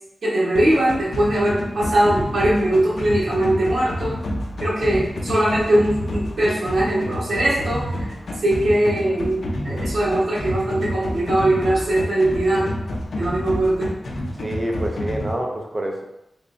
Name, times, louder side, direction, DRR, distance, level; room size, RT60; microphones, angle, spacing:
voice 1, 0.2-4.2 4.6-8.1 8.4-12.7 13.2-13.9, right 1 dB, 70° right, -7 dB, 1.2 m, -21 dB
sound 1, 0.5-15.3, left 1 dB, 65° left, 0.5 m, -29 dB
voice 2, 14.4-16.0, right 1 dB, 20° right, 1 dB, 0.5 m, -27 dB
3.4 x 3.0 x 2.5 m, 0.84 s
wide cardioid pair, 145°, 0 cm